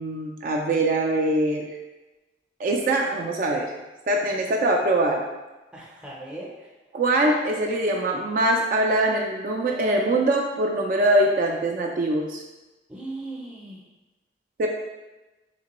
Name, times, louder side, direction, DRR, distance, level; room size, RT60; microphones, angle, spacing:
voice 1, 0.0-1.6 2.6-3.7 4.1-5.2 6.9-12.4 14.6-14.7, right 1 dB, 50° right, 1 dB, 0.3 m, -23 dB
voice 2, 5.7-6.7 12.9-13.8, right 2 dB, 5° right, -4 dB, 0.6 m, -38 dB
3.3 x 2.9 x 2.9 m, 1.1 s
head